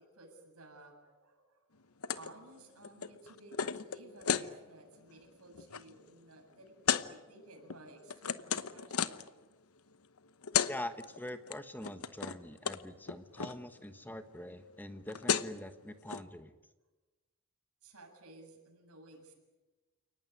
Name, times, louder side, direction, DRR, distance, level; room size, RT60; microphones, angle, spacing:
voice 1, 0.0-1.9 2.1-6.7 7.0-9.1 17.8-19.3, right 2 dB, 80° right, 2 dB, 7.8 m, -55 dB
sound 1, 2.0-2.3 2.6-4.5 5.0-5.2 5.5-5.8 6.9-7.1 7.7-9.3 10.2-10.3 10.4-10.7 11.0-11.5 11.8-12.4 12.7-12.8 13.1-13.6 14.8-14.9 15.1-15.6 16.1-16.2, left 7 dB, 75° left, 1.0 m, -33 dB
voice 2, 10.7-16.5, left 1 dB, 10° left, 10 dB, 1.2 m, -44 dB
30.0 x 18.5 x 9.8 m, 1.2 s
head